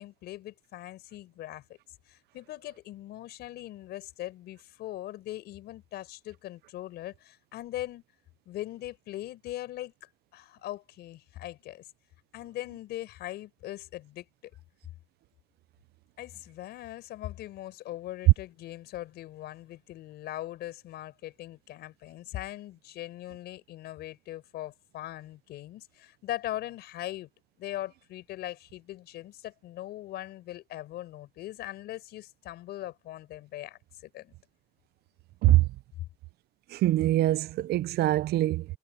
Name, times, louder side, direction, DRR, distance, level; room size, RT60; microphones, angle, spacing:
voice 1, 0.0-1.8 2.1-8.0 8.5-11.8 12.3-14.3 16.2-27.3 27.6-34.3, left 14 dB, 75° left, 5.4 m, -40 dB
voice 2, 36.7-38.6, right 16 dB, 70° right, 0.7 m, -23 dB
cardioid pair, 110°, 17 cm